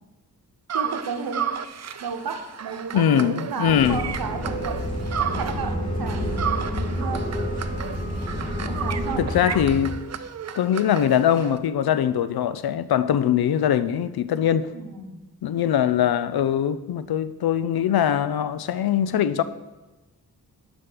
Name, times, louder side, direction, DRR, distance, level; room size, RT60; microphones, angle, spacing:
sound 1, 0.7-5.8 6.1-11.6, right 8 dB, 45° right, 0.5 m, -33 dB
voice 1, 0.7-1.6 2.0-4.9 5.2-6.4 6.8-7.3 8.7-9.3 14.7-15.3, right 5 dB, 70° right, 0.9 m, -32 dB
voice 2, 2.9-4.0 9.2-10.0 10.6-14.7 15.4-19.4, left 9 dB, 75° left, 0.5 m, -22 dB
sound 2, 3.6-9.8, equal, 20° left, 2.0 m, -29 dB
6.5 x 5.3 x 6.1 m
wide cardioid pair, 105°, 37 cm